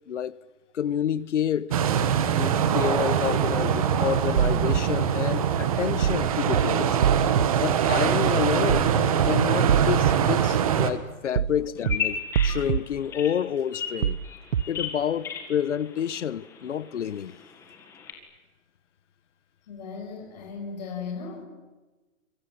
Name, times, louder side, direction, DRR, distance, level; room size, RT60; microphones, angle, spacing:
voice 1, 0.1-0.4 0.7-1.8 2.4-7.0 7.6-9.0 9.2-14.2 14.7-17.4, left 9 dB, 60° left, 1.2 m, -29 dB
sound 1, 1.7-10.9, right 8 dB, 25° right, 1.5 m, -23 dB
sound 2, 4.4-4.8 6.0-6.2 6.5-6.6 7.0-7.5 8.7-8.9 9.2-9.3 9.7-10.1 11.4-11.6 11.9-12.0 12.3-12.8 14.0-14.2 14.5-14.6, right 9 dB, 75° right, 1.1 m, -23 dB
Bird vocalization bird call bird song, 11.8-18.1, left 7 dB, 5° left, 1.8 m, -36 dB
voice 2, 19.7-21.5, left 5 dB, 30° left, 6.5 m, -37 dB
28.0 x 24.0 x 7.6 m
hypercardioid pair, 180°, 41 cm